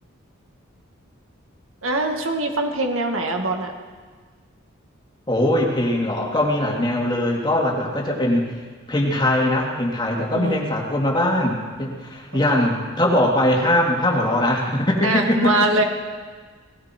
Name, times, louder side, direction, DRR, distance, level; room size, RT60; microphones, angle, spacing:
voice 1, 1.8-3.7 10.3-10.7 12.6-12.7 15.0-15.8, right 2 dB, 85° right, 3 dB, 2.0 m, -22 dB
voice 2, 5.3-8.5 8.9-15.5, left 1 dB, 20° left, -1 dB, 2.4 m, -21 dB
18.5 x 16.5 x 4.5 m, 1.5 s
head